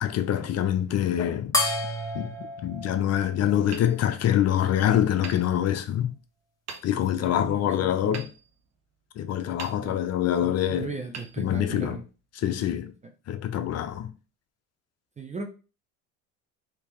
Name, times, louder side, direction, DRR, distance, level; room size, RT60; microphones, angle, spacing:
voice 1, 0.0-1.6 2.1-6.1 6.8-8.3 9.2-10.9 11.4-12.0 12.4-12.9 13.3-14.1, left 10 dB, 40° left, 0.6 m, -25 dB
sound 1, 1.5-4.3, left 2 dB, 10° left, 1.0 m, -31 dB
Hammer, 3.7-4.7 5.2-6.1 6.7-7.3 8.1-9.1 9.6-10.3 11.1-12.1, right 5 dB, 40° right, 0.9 m, -44 dB
voice 2, 7.2-8.2 9.8-10.0 10.4-12.0 15.2-15.5, right 4 dB, 20° right, 0.5 m, -37 dB
3.4 x 2.9 x 3.0 m
hypercardioid pair, 75°, 40 cm